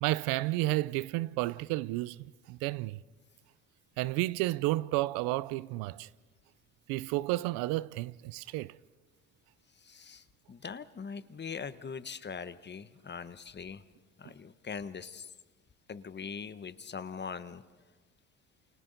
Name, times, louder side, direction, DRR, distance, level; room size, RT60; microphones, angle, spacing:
voice 1, 0.0-3.0 4.0-6.1 6.9-8.7, right 18 dB, 80° right, 0.6 m, -31 dB
voice 2, 9.8-13.8 14.2-15.3 15.9-17.6, left 6 dB, 30° left, 1.0 m, -42 dB
29.0 x 28.0 x 4.0 m
supercardioid pair, 75°, 36 cm